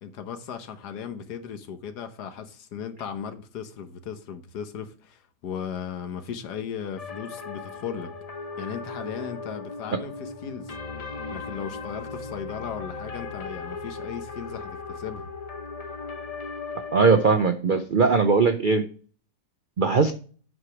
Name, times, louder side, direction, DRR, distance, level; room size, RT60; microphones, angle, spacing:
voice 1, 0.0-8.1 8.6-10.7 11.3-15.3, left 7 dB, 75° left, 1.5 m, -36 dB
sound 1, 7.0-17.4, left 4 dB, 45° left, 0.4 m, -37 dB
voice 2, 16.9-18.9 19.8-20.1, right 4 dB, 70° right, 0.4 m, -20 dB
8.1 x 5.0 x 5.8 m
omnidirectional pair, 1.8 m